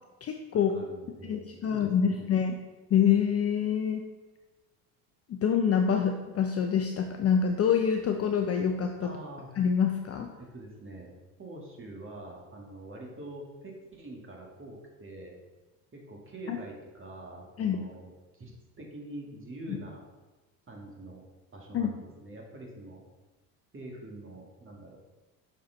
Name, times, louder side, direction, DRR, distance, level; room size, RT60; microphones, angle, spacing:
voice 1, 0.2-0.7 1.3-2.6 2.9-4.0 5.3-9.1 9.6-10.3 16.5-16.6 17.6-17.8 19.7-19.8 21.7-22.0, left 7 dB, 30° left, 4 dB, 0.5 m, -26 dB
voice 2, 0.7-2.2 9.0-9.5 10.4-11.1 11.4-15.3 15.9-18.5 18.8-20.0 20.7-21.2 21.5-23.0 23.7-25.0, right 1 dB, 25° right, -1 dB, 1.9 m, -45 dB
6.4 x 4.5 x 3.9 m, 1.2 s
hypercardioid pair, 75°, 48 cm